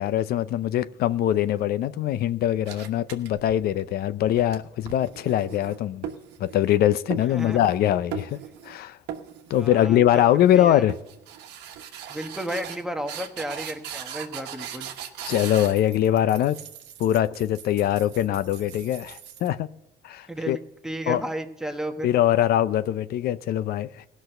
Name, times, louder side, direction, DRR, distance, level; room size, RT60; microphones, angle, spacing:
voice 1, 0.0-6.1 6.4-8.4 8.7-9.0 9.5-11.0 15.2-16.6 17.0-19.7 20.0-20.6 21.1-21.2 22.0-24.1, left 12 dB, 65° left, 0.5 m, -22 dB
sound 1, 2.7-3.8 4.2-6.8 7.1-7.8 8.1-8.8 9.1-9.7 10.0-10.5 10.9-19.5, right 9 dB, 80° right, 1.2 m, -39 dB
voice 2, 7.3-7.6 9.5-10.0 10.5-10.9 12.1-14.9 20.3-22.1, right 1 dB, 5° right, 1.2 m, -33 dB
17.0 x 6.2 x 6.6 m
cardioid pair, 110°, 17 cm